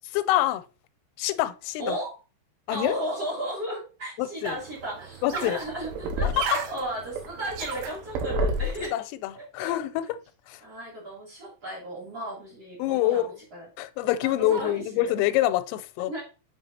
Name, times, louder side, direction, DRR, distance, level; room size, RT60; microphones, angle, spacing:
voice 1, 0.1-0.6 1.2-2.0 2.7-3.0 4.2-4.6 5.2-5.6 6.2-6.6 8.8-10.2 10.5-10.6 12.8-13.4 13.8-16.1, left 14 dB, 90° left, 3.2 m, -26 dB
voice 2, 1.8-2.1 2.7-8.9 9.3-9.7 10.6-13.7 14.0-15.1 16.1-16.2, right 1 dB, 35° right, 3.3 m, -35 dB
sound 1, 4.5-8.9, right 2 dB, 80° right, 3.2 m, -31 dB
7.5 x 5.4 x 2.8 m
omnidirectional pair, 5.8 m